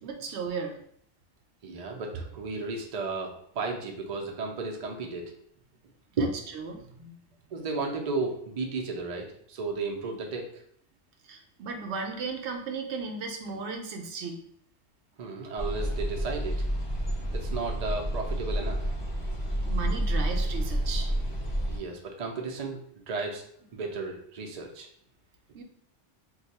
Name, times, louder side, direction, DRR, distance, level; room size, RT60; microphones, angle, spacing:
voice 1, 0.0-0.8 6.2-6.3 6.5-7.2 11.2-14.4 19.6-21.1 21.5-21.6 25.5-25.6, right 4 dB, 70° right, 3 dB, 0.8 m, -36 dB
voice 2, 1.6-5.3 6.2-6.3 7.5-10.6 15.2-16.6 17.3-18.8 19.1-19.2 21.6-24.9, right 3 dB, 55° right, 1 dB, 0.4 m, -34 dB
sound 1, 15.6-21.8, right 1 dB, 30° left, 1.1 m, -29 dB
2.6 x 2.3 x 4.0 m, 0.67 s
omnidirectional pair, 1.2 m